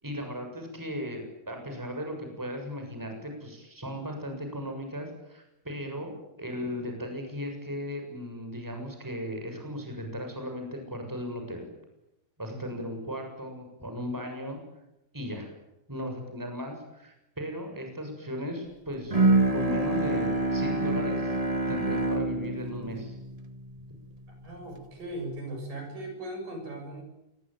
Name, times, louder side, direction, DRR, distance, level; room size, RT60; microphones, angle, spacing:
voice 1, 0.0-6.1 6.4-11.7 12.4-14.6 15.1-15.5 15.9-19.2 19.5-21.3 21.7-23.1, equal, 5° right, 4 dB, 7.0 m, -36 dB
Bowed string instrument, 19.1-24.5, right 2 dB, 50° right, 0.4 m, -27 dB
voice 2, 24.4-27.0, right 1 dB, 65° right, 4 dB, 9.0 m, -38 dB
27.5 x 22.5 x 9.2 m, 0.89 s
omnidirectional pair, 4.1 m